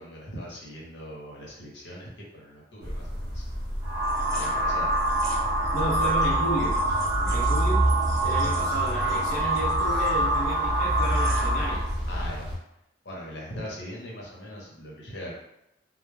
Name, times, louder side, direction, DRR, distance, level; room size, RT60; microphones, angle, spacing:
voice 1, 0.0-3.4 4.4-4.9 7.0-7.5 12.1-12.5 13.0-15.4, equal, 75° left, -4 dB, 0.8 m, -40 dB
sound 1, 2.8-12.6, equal, 55° right, 0.8 m, -29 dB
sound 2, 3.8-11.9, right 2 dB, 20° right, 0.6 m, -26 dB
voice 2, 5.7-6.8 7.2-7.9 8.2-11.8, equal, 40° left, -8 dB, 0.5 m, -32 dB
2.1 x 2.0 x 3.2 m, 0.81 s
head